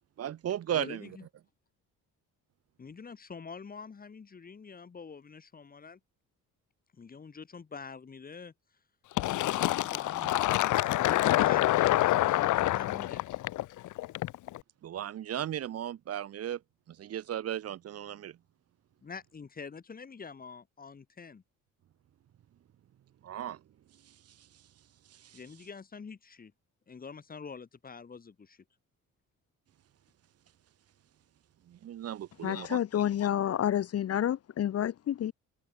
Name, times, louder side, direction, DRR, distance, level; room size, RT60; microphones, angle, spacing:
voice 1, 0.2-1.1 10.2-10.3 14.8-16.6 16.9-18.4 23.2-23.6 24.1-24.5 25.1-25.4 31.7-32.8, right 11 dB, 45° right, 1.2 m, -36 dB
voice 2, 0.7-1.3 2.8-6.0 7.0-8.5 9.5-13.2 19.0-21.4 25.3-26.5 26.9-28.6, left 5 dB, 25° left, 6.7 m, -46 dB
Fill (with liquid), 9.2-14.6, left 16 dB, 65° left, 0.8 m, -27 dB
voice 3, 32.4-35.3, left 10 dB, 45° left, 1.4 m, -29 dB
cardioid pair, 155°, 33 cm